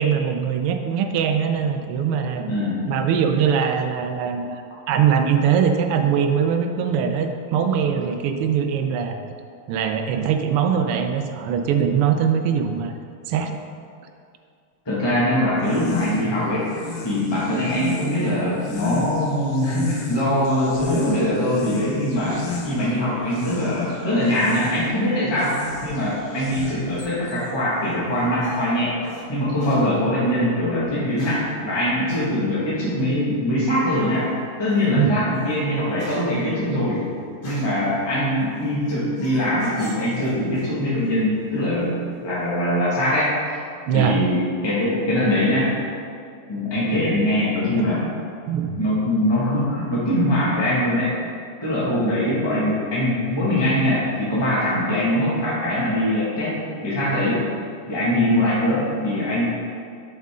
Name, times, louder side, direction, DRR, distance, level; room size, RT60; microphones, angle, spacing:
voice 1, 0.0-2.5 2.9-4.6 4.9-9.2 9.7-12.9 13.3-13.5 35.0-35.1 43.9-44.2 47.8-47.9 48.5-48.8, right 7 dB, 85° right, 6 dB, 1.5 m, -21 dB
voice 2, 2.5-2.8 14.8-16.7 17.0-22.4 22.6-28.9 29.3-34.3 34.6-37.0 37.4-41.9 42.2-43.3 43.9-45.7 46.5-48.0 48.8-51.2 51.6-56.5 56.8-57.5 57.9-59.5, left 1 dB, 15° left, -9 dB, 1.4 m, -22 dB
sound 1, 15.5-27.1, left 3 dB, 70° left, 0.7 m, -34 dB
sound 2, 26.0-29.3 29.6-29.9 30.8-31.5 32.1-32.3 33.8-34.2 34.7-34.9 35.3-37.9 38.4-40.8 41.0-41.6, equal, 30° left, 1.1 m, -41 dB
7.3 x 5.4 x 3.6 m, 2.4 s
omnidirectional pair, 2.4 m